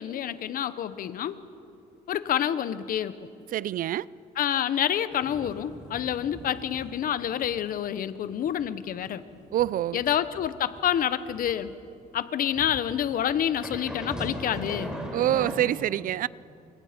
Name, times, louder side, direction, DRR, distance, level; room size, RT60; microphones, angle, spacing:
voice 1, 0.0-1.4 2.1-3.3 4.4-9.2 9.9-11.7 12.1-15.0, left 10 dB, 55° left, 1.1 m, -28 dB
voice 2, 3.5-4.1 9.5-10.0 15.1-16.3, right 13 dB, 55° right, 0.5 m, -26 dB
sound 1, 5.1-7.0 7.4-7.6 8.0-11.6 12.6-15.6, equal, 5° right, 4.0 m, -39 dB
28.5 x 25.5 x 5.2 m
cardioid pair, 110°, 17 cm